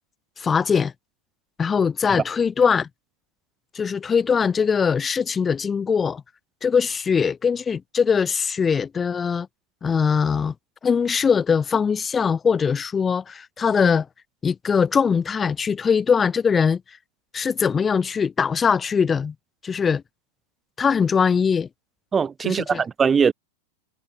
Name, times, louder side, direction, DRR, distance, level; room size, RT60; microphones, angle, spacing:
voice 1, 0.4-0.9 1.6-2.9 3.7-6.2 6.6-9.5 9.8-10.5 10.8-14.1 14.4-16.8 17.3-19.3 19.6-20.0 20.8-21.7 22.4-22.8, left 6 dB, 20° left, 0.9 m, -21 dB
voice 2, 22.1-23.3, right 6 dB, 20° right, 0.7 m, -21 dB
figure-of-eight pair, 90°, 0 cm